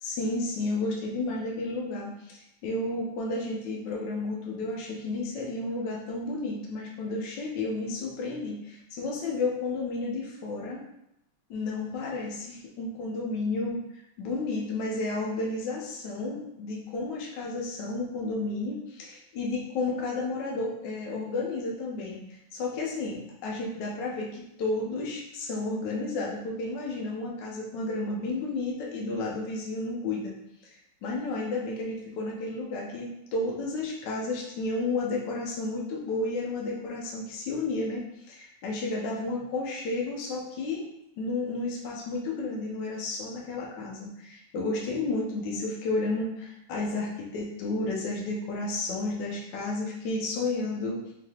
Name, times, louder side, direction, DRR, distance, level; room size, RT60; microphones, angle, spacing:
voice 1, 0.0-10.8 11.5-22.2 22.5-30.3 31.0-40.8 41.2-51.1, left 2 dB, 60° left, -3 dB, 1.4 m, -32 dB
4.7 x 3.6 x 2.4 m, 0.81 s
omnidirectional pair, 2.4 m